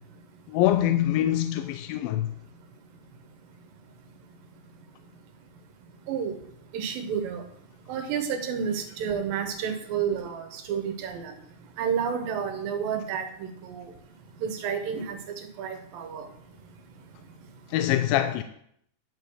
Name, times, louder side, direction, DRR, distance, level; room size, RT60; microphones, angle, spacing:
voice 1, 0.5-2.3 17.7-18.4, left 13 dB, 85° left, 2.3 m, -24 dB
voice 2, 6.1-6.4 6.7-7.4 7.9-11.3 11.8-13.9 14.4-15.2 15.6-16.3, right 7 dB, 85° right, 2.8 m, -30 dB
10.5 x 4.6 x 6.4 m
omnidirectional pair, 4.0 m